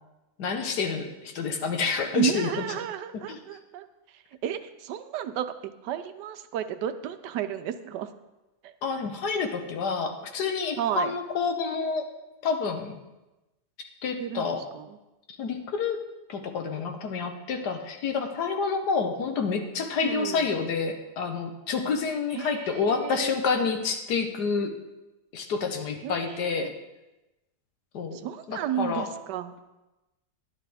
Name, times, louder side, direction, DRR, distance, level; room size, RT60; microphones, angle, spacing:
voice 1, 0.4-2.6 3.3-3.4 8.8-12.1 12.4-13.0 14.0-14.6 15.4-16.0 16.3-24.7 25.3-26.7 27.9-28.2 28.5-29.1, left 5 dB, 75° left, 5 dB, 1.6 m, -28 dB
voice 2, 2.1-3.9 4.1-8.1 8.6-8.7 10.8-11.2 14.2-15.0 20.0-20.5 22.3-23.3 26.0-26.7 28.1-29.5, right 9 dB, 85° right, 10 dB, 1.3 m, -33 dB
11.0 x 10.5 x 3.4 m, 1.0 s
omnidirectional pair, 1.8 m